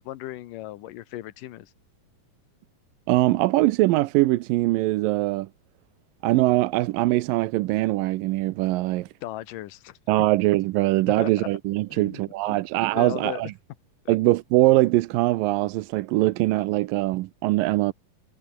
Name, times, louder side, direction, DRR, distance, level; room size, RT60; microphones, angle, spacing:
voice 1, 0.0-1.7 9.2-10.0 11.2-11.5 11.9-12.2 12.5-12.6 12.9-13.4 14.1-14.2, left 15 dB, 75° left, 2.6 m, -36 dB
voice 2, 3.1-5.5 6.2-9.1 10.1-13.5 14.1-17.9, right 18 dB, 90° right, 2.4 m, -22 dB
omnidirectional pair, 3.9 m